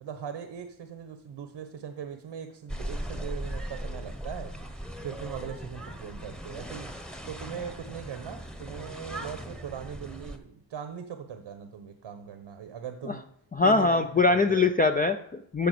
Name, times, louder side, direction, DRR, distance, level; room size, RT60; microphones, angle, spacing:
voice 1, 0.0-4.5 5.0-6.9 7.3-13.3 13.6-14.7, right 8 dB, 80° right, 8 dB, 1.1 m, -40 dB
sound 1, 2.7-10.4, right 1 dB, ahead, 1.0 m, -38 dB
voice 2, 13.5-15.7, left 3 dB, 20° left, 7 dB, 0.4 m, -23 dB
14.0 x 5.1 x 6.7 m, 0.71 s
wide cardioid pair, 140°, 45 cm